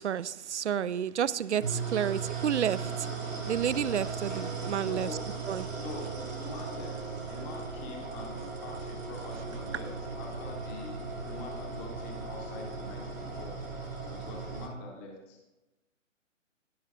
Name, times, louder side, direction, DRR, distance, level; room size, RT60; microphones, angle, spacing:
voice 1, 0.0-2.8 3.4-5.1 5.5-5.8, right 9 dB, 60° right, 19 dB, 0.5 m, -30 dB
sound 1, 1.6-14.7, right 4 dB, 80° right, 3.8 m, -37 dB
voice 2, 4.8-5.2 5.7-11.0 11.3-13.5 14.0-15.4, left 3 dB, 10° left, 1 dB, 0.8 m, -45 dB
16.0 x 5.6 x 3.6 m, 1.0 s
figure-of-eight pair, 140°, 39 cm